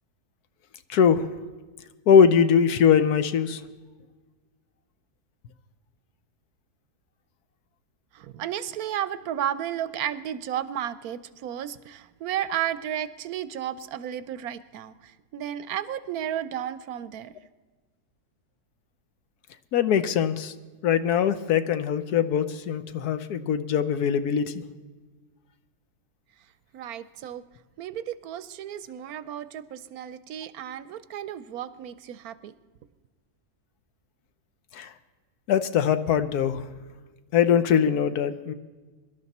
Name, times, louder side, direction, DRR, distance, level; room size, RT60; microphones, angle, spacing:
voice 1, 0.9-1.3 2.1-3.6 19.7-20.5 20.8-24.6 34.7-34.9 35.5-36.6 37.3-38.5, left 7 dB, 75° left, 11 dB, 1.3 m, -22 dB
voice 2, 8.1-17.3 26.7-27.4 27.8-32.5, right 10 dB, 75° right, 16 dB, 1.0 m, -33 dB
23.0 x 12.0 x 4.2 m, 1.3 s
omnidirectional pair, 1.7 m